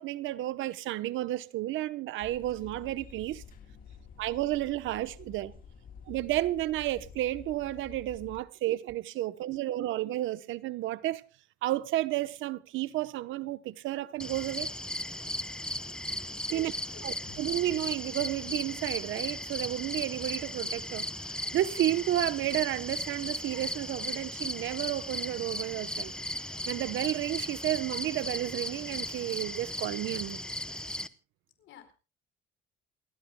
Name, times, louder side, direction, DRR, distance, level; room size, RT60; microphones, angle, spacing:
voice 1, 0.0-3.4 4.2-5.5 6.1-11.2 11.6-14.7 16.5-16.7 17.0-26.1 26.7-30.4, right 15 dB, 70° right, 0.9 m, -32 dB
sound 1, 2.2-8.4, left 6 dB, 40° left, 2.7 m, -50 dB
voice 2, 3.8-4.2 9.5-9.7 16.5-17.3 31.6-31.9, left 9 dB, 65° left, 4.4 m, -52 dB
sound 2, 14.0-15.8 16.1-18.9, left 6 dB, 90° left, 2.3 m, -56 dB
sound 3, 14.2-31.1, left 1 dB, 5° left, 0.8 m, -36 dB
28.5 x 14.0 x 2.2 m
cardioid pair, 125°, 21 cm